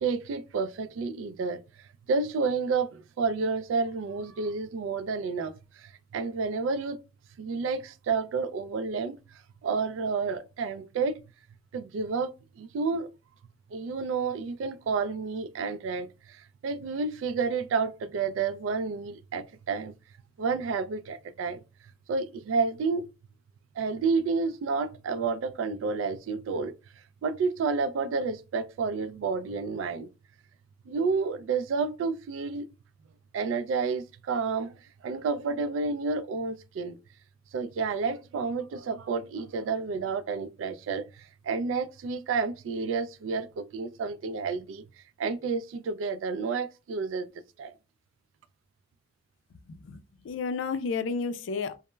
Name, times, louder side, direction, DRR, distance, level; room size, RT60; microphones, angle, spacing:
voice 1, 0.0-1.6 2.1-7.0 7.4-9.2 9.6-11.2 11.7-13.1 13.7-19.9 20.4-21.6 22.1-23.1 23.8-26.7 27.2-30.1 30.9-32.6 33.3-34.7 35.0-37.0 37.5-44.8 45.2-47.3 47.6-47.7, right 4 dB, 90° right, 0.3 m, -30 dB
voice 2, 49.7-51.8, left 5 dB, 75° left, 0.3 m, -32 dB
2.1 x 2.0 x 3.1 m
head